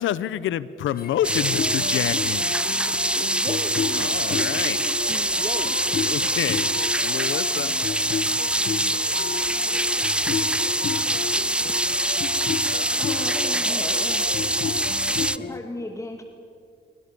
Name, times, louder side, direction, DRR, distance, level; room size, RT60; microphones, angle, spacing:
voice 1, 0.0-2.5 4.0-4.8 6.0-6.7 7.0-7.8, left 12 dB, 75° left, 18 dB, 0.9 m, -28 dB
sound 1, 0.9-15.6, left 6 dB, 45° left, 1.5 m, -32 dB
sound 2, 1.2-15.4, right 1 dB, 5° right, 0.6 m, -24 dB
voice 2, 3.1-5.8, right 3 dB, 25° right, 11 dB, 1.7 m, -37 dB
voice 3, 13.0-14.3 15.4-16.2, left 1 dB, 15° left, 4 dB, 2.4 m, -35 dB
28.5 x 23.5 x 7.0 m, 2.3 s
cardioid pair, 90°, 20 cm